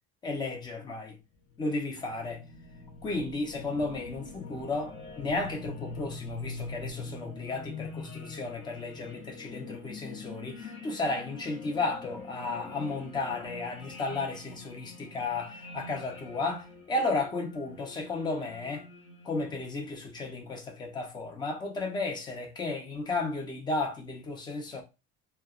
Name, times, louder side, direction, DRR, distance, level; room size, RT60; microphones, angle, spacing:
voice 1, 0.2-1.2 1.6-2.4 3.0-18.9 19.2-24.8, left 3 dB, 15° left, 0.4 m, -33 dB
sound 1, 1.3-19.7, left 4 dB, 40° left, 0.8 m, -44 dB
3.0 x 2.1 x 2.3 m
cardioid pair, 180°, 29 cm